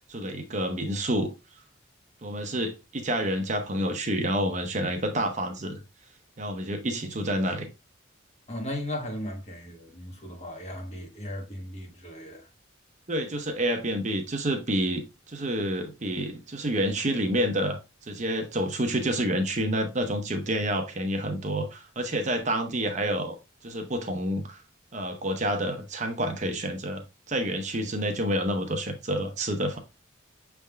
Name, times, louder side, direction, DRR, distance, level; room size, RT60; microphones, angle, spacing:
voice 1, 0.1-1.3 2.2-5.8 6.4-7.7 13.1-17.8 18.1-23.3 23.6-24.6 24.9-27.0 27.3-29.8, right 1 dB, 35° right, 0.7 m, -28 dB
voice 2, 8.5-12.5, left 1 dB, 35° left, 1.2 m, -36 dB
6.4 x 3.5 x 2.2 m
head